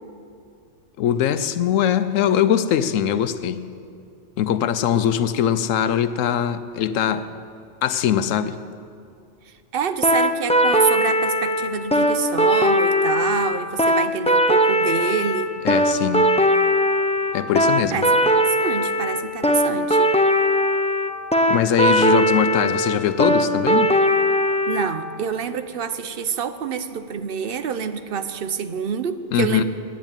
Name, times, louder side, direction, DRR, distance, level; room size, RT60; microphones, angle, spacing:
voice 1, 1.0-3.6 4.4-7.3 7.8-8.6 15.6-16.3 17.3-18.0 21.5-23.9 29.3-29.6, left 9 dB, 80° left, 12 dB, 1.0 m, -21 dB
voice 2, 9.7-15.5 17.9-20.1 24.7-29.6, right 7 dB, 55° right, 11 dB, 0.7 m, -27 dB
sound 1, 10.0-24.9, equal, 10° left, 0.3 m, -19 dB
10.5 x 8.9 x 8.9 m, 2.4 s
omnidirectional pair, 1.3 m